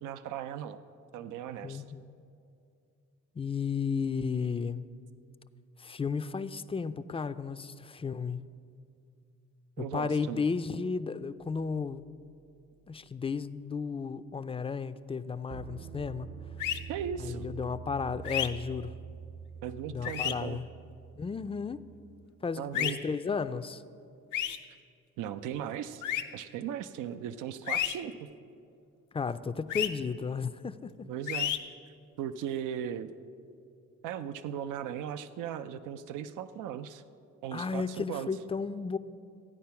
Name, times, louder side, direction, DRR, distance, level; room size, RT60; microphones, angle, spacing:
voice 1, 0.0-0.8 1.1-1.8 9.8-10.4 16.9-17.5 19.6-20.6 22.6-23.0 25.2-26.0 26.3-28.1 31.1-31.5 32.2-33.1 34.0-37.0 37.4-38.3, right 9 dB, 90° right, 12 dB, 0.5 m, -37 dB
voice 2, 1.6-2.0 3.3-4.8 5.8-8.5 9.8-12.0 12.9-16.3 17.2-18.9 19.9-20.7 21.2-21.9 22.4-23.8 29.1-30.9 37.5-39.0, left 5 dB, 20° left, 12 dB, 0.4 m, -33 dB
sound 1, 11.4-11.6 15.5-22.3, right 7 dB, 35° right, 0.6 m, -45 dB
sound 2, 16.6-16.8 18.2-18.5 20.0-20.3 22.7-22.9 24.3-24.6 26.0-26.2 27.7-27.9 29.7-29.9 31.3-31.6, left 11 dB, 85° left, 0.7 m, -30 dB
13.5 x 9.5 x 5.7 m, 2.5 s
cardioid pair, 90°, 30 cm